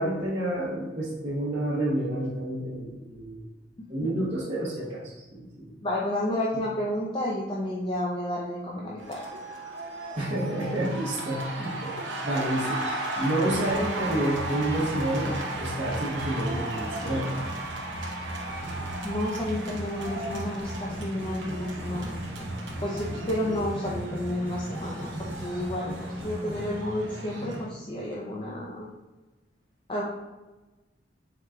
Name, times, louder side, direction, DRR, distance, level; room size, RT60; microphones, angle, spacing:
voice 1, 0.0-3.4 3.9-5.7 10.2-12.0 12.2-12.8 13.2-17.3, right 1 dB, 35° right, -8 dB, 0.8 m, -29 dB
voice 2, 5.8-9.3 19.0-22.1 22.8-28.9 29.9-30.0, left 1 dB, 25° left, -4 dB, 0.5 m, -31 dB
sound 1, 9.0-27.6, right 2 dB, 75° right, 0.8 m, -36 dB
sound 2, 13.4-27.3, equal, 10° right, 0.8 m, -38 dB
4.7 x 3.6 x 2.2 m, 1.1 s
head